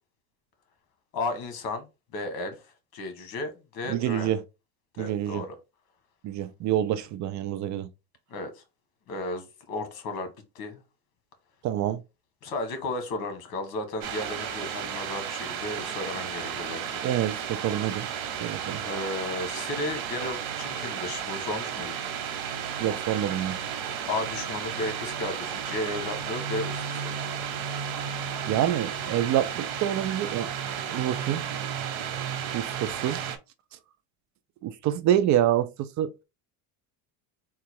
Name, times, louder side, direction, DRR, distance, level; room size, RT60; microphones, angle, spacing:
voice 1, 1.1-4.3 5.0-5.5 8.3-8.6 9.1-10.3 10.5-10.8 12.4-17.0 18.8-22.1 24.0-27.1, left 2 dB, 60° left, 1.5 m, -34 dB
voice 2, 3.9-4.4 5.0-5.5 6.2-7.9 11.6-12.0 17.0-18.1 18.4-18.8 22.8-23.6 28.5-30.5 30.9-31.5 32.5-33.3 34.6-36.2, right 11 dB, 45° right, 0.5 m, -27 dB
sound 1, 14.0-33.4, right 8 dB, 70° right, 1.2 m, -33 dB
3.9 x 2.4 x 4.5 m
cardioid pair, 140°, 40 cm